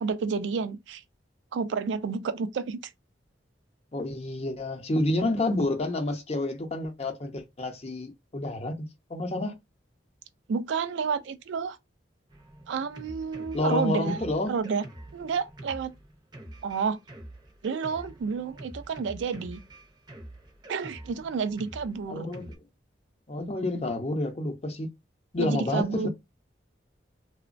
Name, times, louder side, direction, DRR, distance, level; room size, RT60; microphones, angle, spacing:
voice 1, 0.0-1.0 1.5-2.8 10.5-11.8 12.7-14.8 15.1-15.9 16.6-17.0 17.6-19.6 20.7-22.3 25.4-26.1, right 5 dB, 80° right, 0.3 m, -30 dB
voice 2, 3.9-9.5 13.5-14.6 22.1-22.5 23.3-24.9 25.3-26.1, left 2 dB, 35° left, 0.6 m, -29 dB
Drum kit, 12.3-22.6, right 1 dB, 25° right, 0.5 m, -46 dB
2.9 x 2.1 x 2.5 m
head